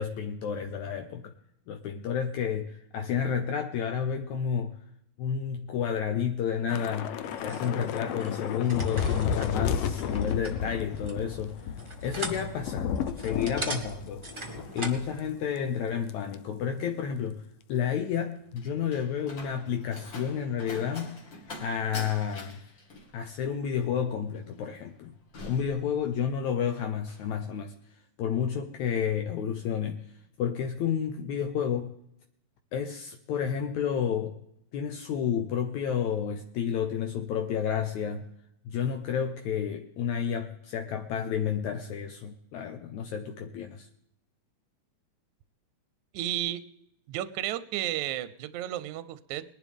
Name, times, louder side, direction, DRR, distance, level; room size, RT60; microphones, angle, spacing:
voice 1, 0.0-1.3 1.7-4.7 5.2-7.1 7.4-11.6 12.0-12.9 13.2-14.3 14.7-17.4 17.7-21.2 21.6-22.6 23.1-25.1 25.4-27.8 28.2-30.0 30.4-31.9 32.7-34.4 34.7-38.3 38.7-43.9, left 8 dB, 70° left, 5 dB, 2.1 m, -31 dB
Thunder / Rain, 6.7-15.3 15.6-15.7 16.1-16.4, left 7 dB, 90° left, 1.4 m, -33 dB
sound 1, 7.2-15.1, right 2 dB, 30° right, 0.5 m, -40 dB
Slam, 18.0-26.5 26.8-27.3, left 2 dB, 40° left, 2.1 m, -45 dB
voice 2, 46.1-46.6 47.1-49.4, right 13 dB, 75° right, 14 dB, 1.9 m, -32 dB
20.5 x 11.0 x 3.5 m, 0.72 s
omnidirectional pair, 3.7 m